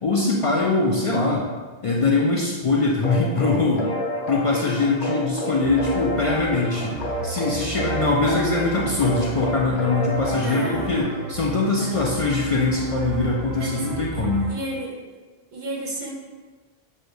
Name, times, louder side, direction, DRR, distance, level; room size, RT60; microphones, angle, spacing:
voice 1, 0.0-1.5 1.8-3.9 4.3-7.0 7.2-14.5, left 3 dB, 55° left, -3 dB, 0.3 m, -22 dB
sound 1, 3.0-11.0, left 1 dB, 90° left, 0.9 m, -30 dB
sound 2, 5.6-14.5, right 5 dB, 90° right, 0.8 m, -34 dB
voice 2, 10.4-11.0 11.8-12.1 13.6-15.0 15.5-16.1, right 1 dB, 50° right, -2 dB, 0.7 m, -33 dB
6.2 x 2.2 x 2.6 m, 1.3 s
omnidirectional pair, 1.1 m